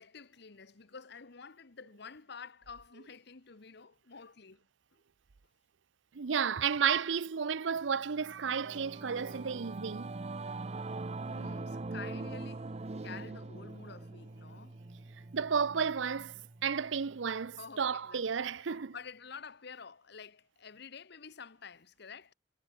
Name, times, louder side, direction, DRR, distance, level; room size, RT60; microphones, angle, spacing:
voice 1, 0.0-4.7 4.9-5.0 11.2-12.7 13.0-14.8 17.6-18.3 18.6-22.3, left 5 dB, 65° left, 1.2 m, -49 dB
voice 2, 6.1-10.1 15.3-18.9, right 6 dB, 85° right, 0.6 m, -32 dB
Singing / Musical instrument, 7.9-17.6, right 3 dB, 35° right, 0.7 m, -43 dB
head